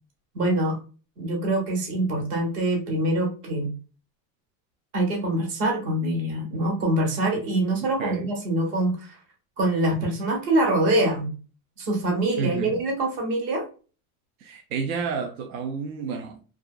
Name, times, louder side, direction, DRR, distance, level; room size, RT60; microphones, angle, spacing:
voice 1, 0.3-0.8 1.2-3.7 4.9-9.2 9.6-11.3 11.8-13.7, right 1 dB, 25° right, 0.3 m, -24 dB
voice 2, 7.8-8.3 12.4-12.8 14.4-16.4, right 5 dB, 80° right, 0.6 m, -30 dB
2.5 x 2.4 x 2.3 m
supercardioid pair, 160°, 42 cm